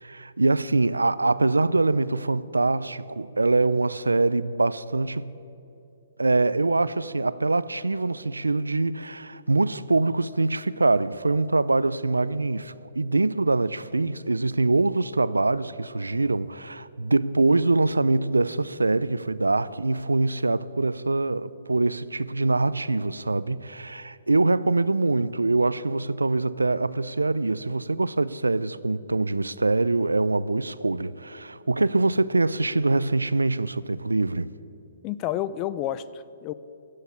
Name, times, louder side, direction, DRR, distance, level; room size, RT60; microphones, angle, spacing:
voice 1, 0.0-5.4 6.2-34.5, right 2 dB, 90° right, 0.4 m, -24 dB
voice 2, 35.0-36.5, left 12 dB, 30° left, 0.4 m, -30 dB
15.5 x 6.5 x 9.4 m
figure-of-eight pair, 125°, 0 cm